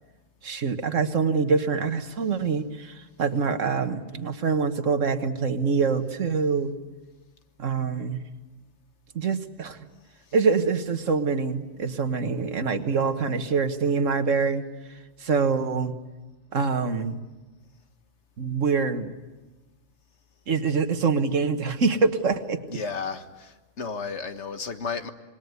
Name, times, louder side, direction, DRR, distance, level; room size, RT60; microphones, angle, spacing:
voice 1, 0.4-6.8 7.6-8.2 9.2-9.8 10.3-14.6 15.2-16.0 16.5-17.2 18.4-19.1 20.5-22.8, right 5 dB, 80° right, 1.8 m, -25 dB
voice 2, 22.7-25.1, left 5 dB, 65° left, 1.7 m, -33 dB
26.5 x 20.5 x 9.6 m
omnidirectional pair, 1.3 m